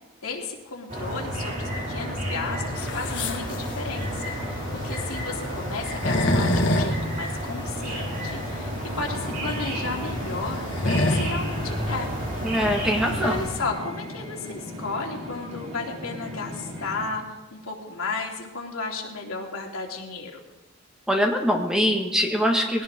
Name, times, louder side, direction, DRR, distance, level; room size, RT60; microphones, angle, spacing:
voice 1, 0.2-12.1 13.2-20.4, left 3 dB, 85° left, 0 dB, 2.7 m, -34 dB
sound 1, 0.9-13.4, equal, 40° right, 3.9 m, -31 dB
sound 2, 2.8-13.6, left 1 dB, 55° left, 1.8 m, -28 dB
sound 3, 8.1-17.1, left 1 dB, 75° right, 4.3 m, -38 dB
voice 2, 12.4-13.5 21.1-22.8, equal, 5° right, 1 dB, 1.5 m, -23 dB
20.5 x 17.5 x 3.7 m, 1.1 s
head